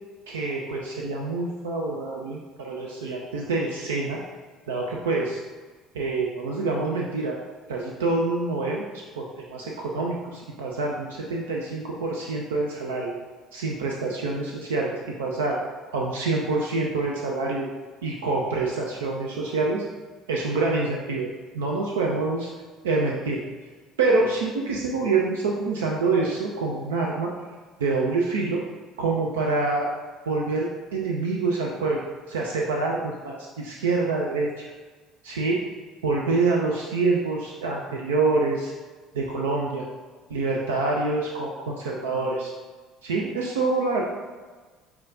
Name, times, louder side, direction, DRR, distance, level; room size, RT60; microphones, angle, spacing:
voice 1, 0.3-4.2 4.7-5.4 5.9-7.4 7.7-13.2 13.5-15.6 15.9-17.7 18.0-19.8 20.3-21.3 21.5-22.5 22.8-23.4 24.0-27.3 27.8-28.6 29.0-29.9 30.3-32.0 32.3-34.7 35.2-35.6 36.0-38.7 39.1-39.8 40.3-42.5 43.0-44.0, right 3 dB, 70° right, -2 dB, 0.3 m, -26 dB
5.9 x 2.3 x 2.5 m, 1.4 s
figure-of-eight pair, 55°, 0 cm